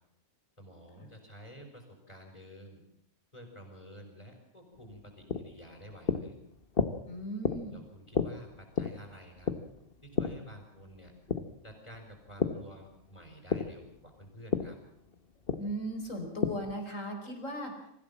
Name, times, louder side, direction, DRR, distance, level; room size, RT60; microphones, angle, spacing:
voice 1, 0.6-2.8 3.3-6.4 7.7-9.5 10.0-11.1 11.6-14.8, equal, 30° left, 3 dB, 6.1 m, -50 dB
sound 1, 4.7-12.7 13.0-16.8, left 5 dB, 45° left, 1.6 m, -34 dB
voice 2, 7.1-7.8 15.6-17.7, equal, 75° left, 4 dB, 5.2 m, -37 dB
25.0 x 15.5 x 7.4 m, 0.76 s
omnidirectional pair, 1.3 m